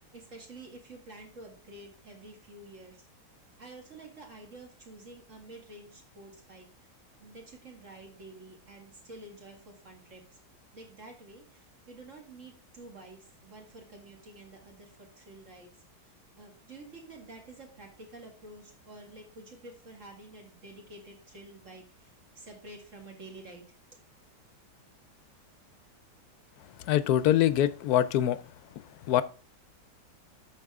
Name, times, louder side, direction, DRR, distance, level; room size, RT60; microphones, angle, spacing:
voice 1, 0.1-3.0 3.6-6.9 7.2-10.4 10.7-15.7 16.0-23.8, right 2 dB, 45° right, 2.3 m, -49 dB
voice 2, 26.8-28.4 29.1-29.2, left 11 dB, 70° left, 1.0 m, -24 dB
12.5 x 4.8 x 3.6 m
omnidirectional pair, 1.8 m